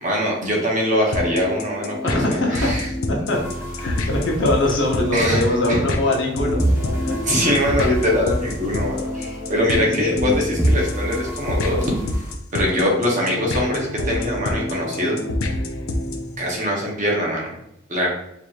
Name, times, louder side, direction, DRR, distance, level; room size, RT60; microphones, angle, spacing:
voice 1, 0.0-2.9 5.1-5.4 5.7-5.8 7.2-11.9 12.5-15.2 16.4-17.5 17.9-18.1, left 1 dB, 35° right, -2 dB, 0.9 m, -22 dB
sound 1, 1.1-16.4, left 1 dB, 85° left, 0.5 m, -27 dB
voice 2, 2.0-2.7 3.1-3.4 3.8-6.6 7.0-7.3 9.7-10.6, left 1 dB, 60° left, -1 dB, 0.9 m, -22 dB
sound 2, 3.3-6.3 6.6-10.3 10.6-12.3, right 1 dB, 10° right, 0.4 m, -29 dB
4.7 x 2.8 x 2.5 m, 0.78 s
head